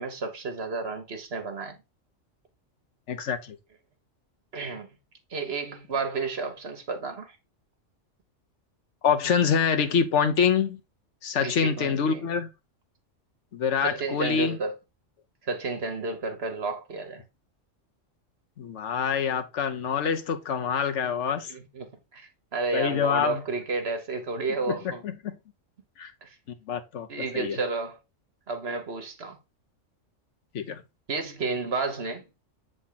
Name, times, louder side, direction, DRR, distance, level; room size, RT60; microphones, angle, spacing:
voice 1, 0.0-1.8 4.5-4.9 5.3-7.3 11.4-12.3 13.8-14.7 15.4-17.2 21.5-25.0 26.2-26.3 27.1-28.0 28.5-29.4 31.1-32.2, right 3 dB, 55° right, 1.6 m, -31 dB
voice 2, 3.1-3.6 9.0-10.8 11.2-12.5 13.5-14.6 18.6-21.5 22.7-23.4 24.7-24.8 25.0-25.4 26.0-26.1 26.7-27.1 27.3-27.6 30.5-30.8, left 7 dB, 70° left, 1.2 m, -26 dB
7.2 x 3.9 x 3.9 m
omnidirectional pair, 1.3 m